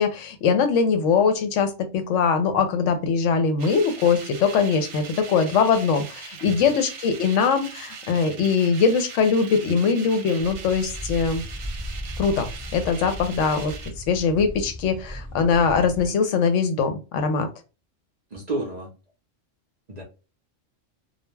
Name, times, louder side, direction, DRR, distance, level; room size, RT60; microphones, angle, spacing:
voice 1, 0.0-11.4 12.2-12.5 12.7-13.7 14.1-17.5, left 5 dB, 75° left, 8 dB, 0.9 m, -22 dB
sound 1, 3.6-13.9, right 6 dB, 70° right, 0.9 m, -40 dB
sound 2, 10.4-16.1, equal, 20° left, 0.5 m, -36 dB
voice 2, 18.3-18.9 19.9-20.0, right 2 dB, 45° right, -1 dB, 0.6 m, -31 dB
2.4 x 2.1 x 3.1 m, 0.30 s
omnidirectional pair, 1.3 m